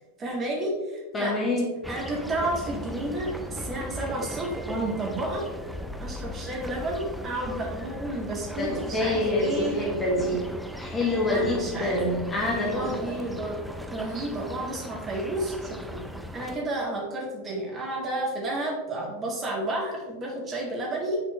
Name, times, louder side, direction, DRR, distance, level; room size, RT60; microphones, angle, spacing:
voice 1, 0.2-1.3 1.9-5.4 6.0-9.8 11.3-12.0 12.5-13.6 13.9-16.0 16.3-21.2, right 1 dB, 25° right, -2 dB, 1.8 m, -31 dB
voice 2, 1.1-1.7 8.6-10.5 10.8-13.1, left 1 dB, 20° left, -3 dB, 1.4 m, -26 dB
sound 1, 1.8-16.6, equal, ahead, 0.5 m, -38 dB
7.7 x 4.3 x 3.3 m, 1.2 s
figure-of-eight pair, 90°, 0 cm